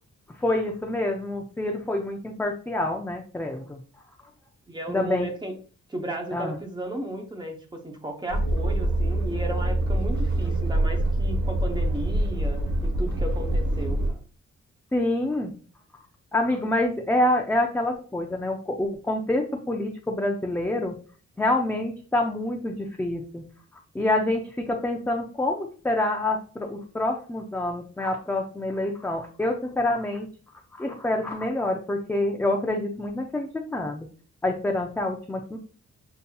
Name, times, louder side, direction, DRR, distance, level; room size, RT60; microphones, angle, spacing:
voice 1, 0.3-3.8 4.9-5.3 6.3-6.6 14.9-15.5 16.3-21.0 21.4-23.5 23.9-30.3 30.7-34.1 34.4-35.6, left 1 dB, 5° left, 1 dB, 0.3 m, -27 dB
voice 2, 4.7-5.5 5.9-14.0, right 1 dB, 15° right, 2 dB, 0.7 m, -34 dB
sound 1, 8.3-14.1, right 1 dB, 70° right, 1.3 m, -25 dB
6.6 x 2.6 x 2.3 m, 0.39 s
wide cardioid pair, 180°, 29 cm